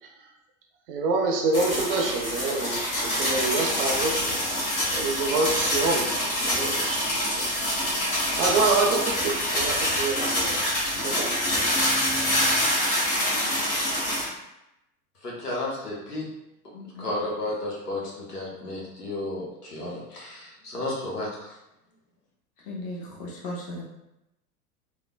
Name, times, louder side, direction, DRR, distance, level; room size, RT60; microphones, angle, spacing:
voice 1, 0.9-4.6 4.9-7.5 8.3-10.6 11.0-11.4, right 3 dB, 40° right, 0 dB, 0.5 m, -27 dB
sound 1, 1.5-14.3, equal, 65° left, 1.4 m, -26 dB
voice 2, 15.2-16.2 17.0-21.3, left 2 dB, 80° left, -4 dB, 0.9 m, -32 dB
voice 3, 16.7-17.1 22.7-23.8, left 1 dB, 20° left, -3 dB, 0.4 m, -36 dB
3.2 x 2.0 x 2.2 m, 0.88 s
figure-of-eight pair, 90°, 46 cm